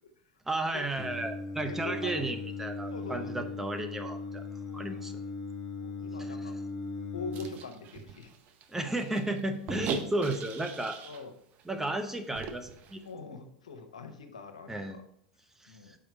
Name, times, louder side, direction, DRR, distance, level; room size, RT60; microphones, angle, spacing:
voice 1, 0.5-4.4 4.7-5.2 6.3-6.5 8.7-11.0 11.7-13.0 14.7-15.0 15.6-16.0, right 2 dB, 10° right, 6 dB, 0.8 m, -33 dB
Singing, 1.0-7.5, left 3 dB, 15° left, 1.4 m, -38 dB
voice 2, 1.5-2.3 2.9-3.5 4.7-5.0 5.8-6.5 7.1-8.3 11.0-11.3 13.0-15.0 15.7-15.9, left 4 dB, 90° left, 6 dB, 0.9 m, -43 dB
sound 1, 7.3-11.3 11.6-11.7 12.0-13.0, right 6 dB, 50° right, 0.8 m, -40 dB
5.6 x 4.8 x 4.6 m, 0.69 s
hypercardioid pair, 95°, 3 cm